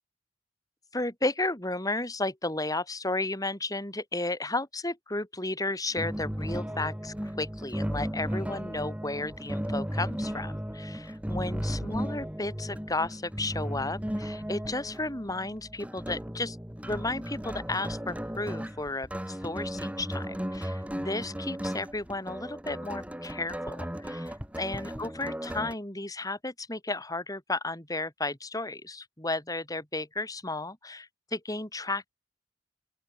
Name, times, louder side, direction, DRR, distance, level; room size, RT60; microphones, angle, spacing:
voice 1, 0.9-16.6 16.8-32.1, left 2 dB, 20° left, 5.1 m, -33 dB
sound 1, 6.0-25.7, equal, 5° right, 2.3 m, -35 dB
open air
head